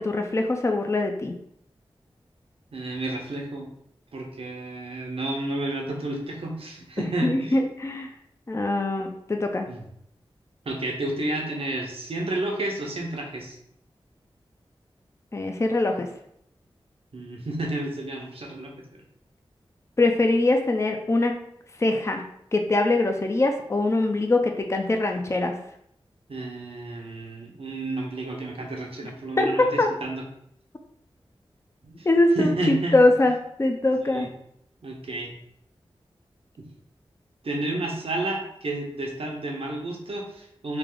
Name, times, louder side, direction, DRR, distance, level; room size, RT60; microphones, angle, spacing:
voice 1, 0.0-1.4 7.0-8.1 8.5-9.7 15.3-16.1 20.0-21.3 21.8-22.2 22.5-25.5 29.4-29.9 32.1-34.3, left 2 dB, 30° left, 4 dB, 0.5 m, -23 dB
voice 2, 2.7-3.7 4.1-7.6 9.7-9.8 10.6-13.6 17.1-19.0 26.3-30.2 31.8-32.1 32.3-33.0 34.1-34.3 34.8-35.3 36.6-36.7 37.4-40.8, right 2 dB, 70° right, 0 dB, 0.8 m, -31 dB
3.2 x 2.4 x 3.7 m, 0.72 s
cardioid pair, 45°, 10 cm